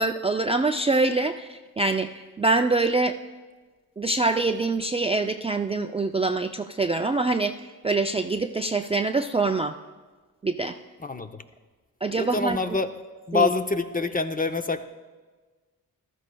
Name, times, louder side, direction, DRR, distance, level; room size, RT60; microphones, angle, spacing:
voice 1, 0.0-3.1 4.0-9.7 10.4-10.8 12.0-12.6 13.3-13.5, right 3 dB, 15° right, 5 dB, 0.4 m, -25 dB
voice 2, 11.0-11.4 12.2-12.9 13.3-14.8, left 4 dB, 25° left, 8 dB, 0.6 m, -26 dB
15.0 x 12.5 x 2.3 m, 1.4 s
cardioid pair, 65°, 36 cm